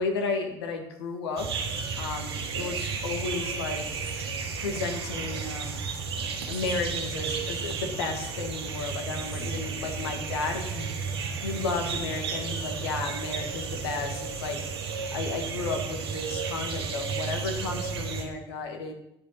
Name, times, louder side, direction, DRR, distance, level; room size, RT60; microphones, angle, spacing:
voice 1, 0.0-1.5 2.0-4.0 4.6-5.8 6.1-10.9 11.4-14.6 15.1-18.9, left 4 dB, 85° left, 4 dB, 1.5 m, -33 dB
sound 1, 1.4-18.2, right 5 dB, 90° right, 1.5 m, -33 dB
10.5 x 5.1 x 5.6 m, 0.82 s
hypercardioid pair, 65°, 13 cm